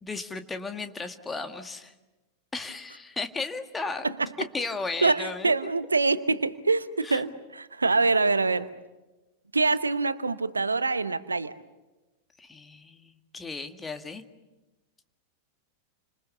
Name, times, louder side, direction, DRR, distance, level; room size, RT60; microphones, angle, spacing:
voice 1, 0.0-1.9 2.5-4.1 4.5-5.6 7.0-7.2 12.4-14.2, left 3 dB, 15° left, 7 dB, 1.9 m, -35 dB
voice 2, 5.0-8.7 9.5-11.5, right 3 dB, 80° right, 15 dB, 1.0 m, -25 dB
30.0 x 26.0 x 6.9 m, 1.1 s
figure-of-eight pair, 90°, 0 cm